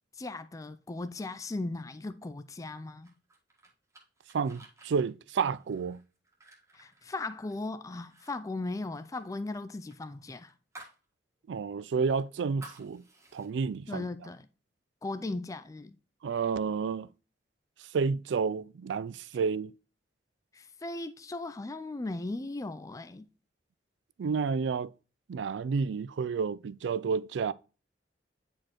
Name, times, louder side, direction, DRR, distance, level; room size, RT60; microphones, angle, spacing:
voice 1, 0.2-3.1 6.7-10.5 13.9-14.4 15.0-16.0 20.5-23.3, left 2 dB, 20° left, 0.4 m, -37 dB
sound 1, 3.0-7.6 8.0-8.3 8.6-11.0 11.4-11.5 11.9-13.5, right 2 dB, 15° right, 1.5 m, -54 dB
voice 2, 4.3-6.0 11.5-13.0 13.3-14.1 16.2-17.1 17.9-19.7 24.2-24.9 25.3-27.5, right 5 dB, 80° right, 0.4 m, -30 dB
9.5 x 4.4 x 3.0 m
head